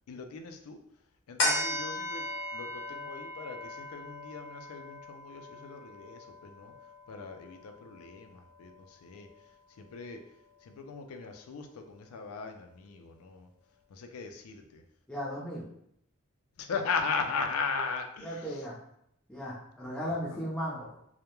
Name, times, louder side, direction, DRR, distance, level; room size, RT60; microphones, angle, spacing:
voice 1, 0.1-0.8 1.3-6.7 7.1-9.3 9.8-10.2 10.6-13.5 13.9-14.8 16.6-18.4 20.1-20.2, left 4 dB, 90° left, 5 dB, 0.4 m, -38 dB
sound 1, 1.4-8.1 8.6-8.7, left 1 dB, 60° left, 0.8 m, -36 dB
voice 2, 15.1-15.6 18.2-18.8 19.3-21.0, equal, 5° left, -7 dB, 0.5 m, -36 dB
2.2 x 2.0 x 2.9 m, 0.72 s
head